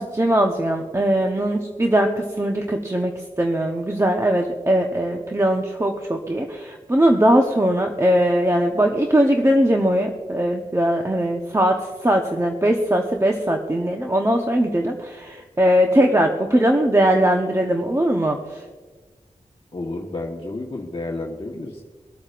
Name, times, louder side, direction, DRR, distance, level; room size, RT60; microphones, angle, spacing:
voice 1, 0.0-3.1 3.4-18.6, right 1 dB, 20° right, 1 dB, 1.0 m, -20 dB
voice 2, 19.7-21.8, left 2 dB, 40° left, -2 dB, 1.3 m, -31 dB
24.5 x 8.7 x 2.5 m, 1.4 s
wide cardioid pair, 65°, 14 cm